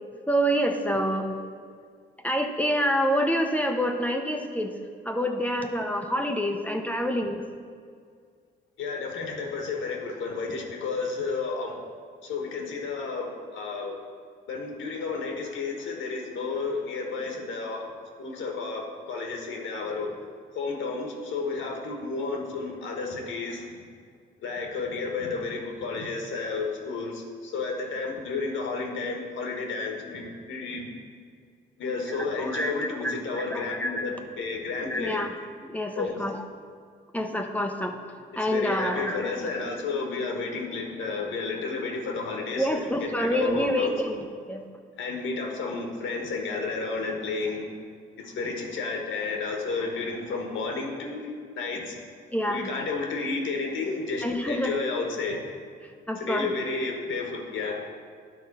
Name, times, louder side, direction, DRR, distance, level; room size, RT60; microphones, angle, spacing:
voice 1, 0.3-1.3 2.2-4.7 5.1-7.4 32.1-34.1 34.9-36.4 37.1-38.0 38.4-39.5 42.6-44.2 44.5-44.6 52.3-52.7 54.2-54.7 56.1-56.5, equal, 5° left, 3 dB, 0.6 m, -27 dB
voice 2, 8.8-11.8 12.2-14.0 14.5-17.8 18.2-20.1 20.5-23.6 24.4-30.9 31.8-35.3 36.0-36.2 38.3-43.9 45.0-47.7 48.2-51.9 52.4-55.4 56.2-57.8, left 4 dB, 75° left, 2 dB, 1.4 m, -32 dB
10.5 x 3.8 x 5.4 m, 2.1 s
cardioid pair, 90°, 20 cm